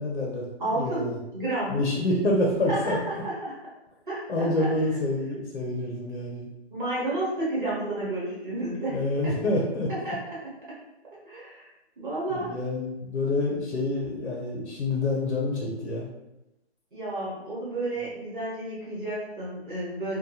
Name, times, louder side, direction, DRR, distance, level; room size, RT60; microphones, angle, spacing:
voice 1, 0.0-1.2 1.7-3.0 4.3-6.5 8.9-9.9 12.3-16.1, left 2 dB, 70° left, -2 dB, 0.7 m, -27 dB
voice 2, 0.6-1.8 2.7-3.5 4.1-4.7 6.7-9.3 10.0-10.1 11.2-11.6 12.0-12.5 16.9-20.2, right 1 dB, 45° right, -7 dB, 1.0 m, -31 dB
2.8 x 2.2 x 2.3 m, 0.92 s
hypercardioid pair, 165°, 34 cm